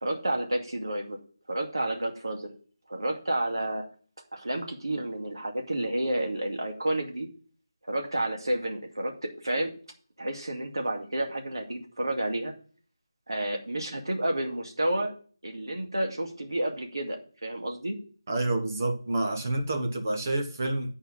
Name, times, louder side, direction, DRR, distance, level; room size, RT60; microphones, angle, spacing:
voice 1, 0.0-1.2 1.5-2.5 2.9-3.8 4.3-7.3 7.9-9.7 10.2-12.5 13.3-15.1 15.4-18.0, right 1 dB, 75° right, 2.1 m, -30 dB
voice 2, 18.3-20.9, right 2 dB, 40° right, 1.1 m, -28 dB
9.3 x 4.4 x 7.2 m
figure-of-eight pair, 165°, 2 cm